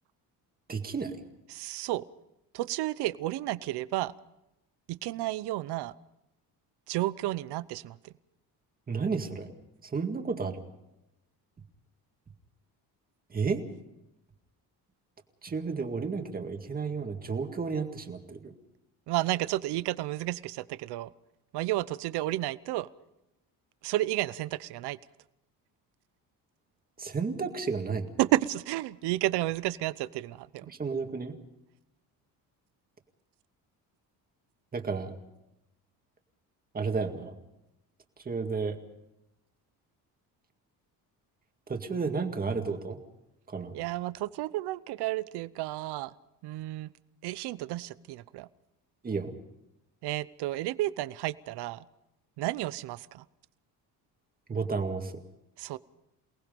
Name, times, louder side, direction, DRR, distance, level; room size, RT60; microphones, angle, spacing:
voice 1, 0.7-1.2 8.9-9.5 9.8-10.6 13.3-13.6 15.4-18.5 27.0-28.1 30.7-31.3 34.7-35.1 36.7-37.3 38.3-38.8 41.7-43.0 43.5-43.7 49.0-49.3 54.5-55.1, right 5 dB, 25° right, 5 dB, 2.0 m, -32 dB
voice 2, 1.5-2.1 2.5-4.1 4.9-5.9 6.9-8.1 19.1-21.1 21.5-22.9 23.8-25.0 28.2-30.7 43.7-46.1 46.4-46.9 47.2-48.5 50.0-51.8 52.4-53.2 55.6-55.8, right 16 dB, 85° right, 17 dB, 0.8 m, -31 dB
28.5 x 19.0 x 5.3 m, 0.90 s
cardioid pair, 155°, 39 cm